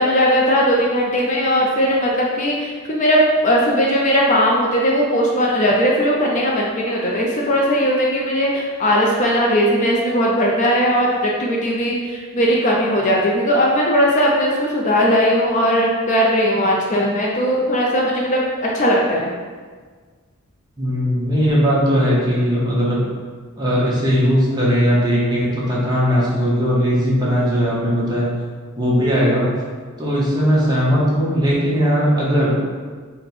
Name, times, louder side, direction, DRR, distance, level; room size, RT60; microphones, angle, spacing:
voice 1, 0.0-19.3, equal, 35° left, -2 dB, 0.4 m, -18 dB
voice 2, 20.8-23.1 23.6-28.4 28.8-29.5 30.0-32.6, equal, 20° right, -6 dB, 0.8 m, -18 dB
4.2 x 2.1 x 4.2 m, 1.5 s
head